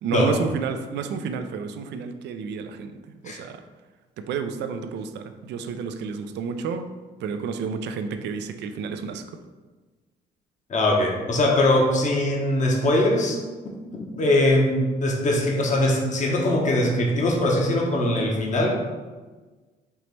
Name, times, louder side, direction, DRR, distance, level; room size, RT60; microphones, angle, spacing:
voice 1, 0.0-3.6 4.2-6.9 7.2-9.4, right 5 dB, 70° right, 8 dB, 0.4 m, -31 dB
voice 2, 10.7-13.4 13.9-18.8, left 1 dB, 40° left, 0 dB, 0.9 m, -21 dB
4.4 x 2.9 x 3.3 m, 1.3 s
supercardioid pair, 65°, 18 cm